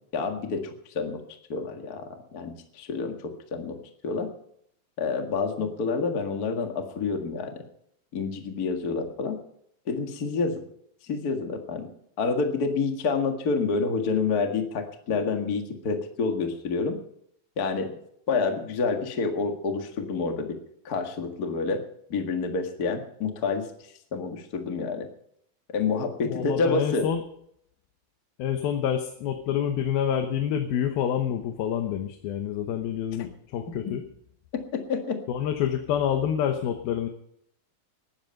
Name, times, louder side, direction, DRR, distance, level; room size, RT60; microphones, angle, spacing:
voice 1, 0.1-1.2 1.5-3.8 4.0-4.3 5.0-7.5 8.1-9.4 9.9-10.6 11.0-11.9 12.2-17.0 17.6-17.9 18.3-20.6 20.8-21.8 22.1-23.7 24.1-25.1 25.7-27.1 34.9-35.2, left 4 dB, 40° left, 4 dB, 1.5 m, -28 dB
voice 2, 26.2-27.2 28.4-34.0 35.3-37.1, left 9 dB, 80° left, 6 dB, 2.9 m, -27 dB
20.0 x 10.5 x 5.3 m, 0.70 s
omnidirectional pair, 4.3 m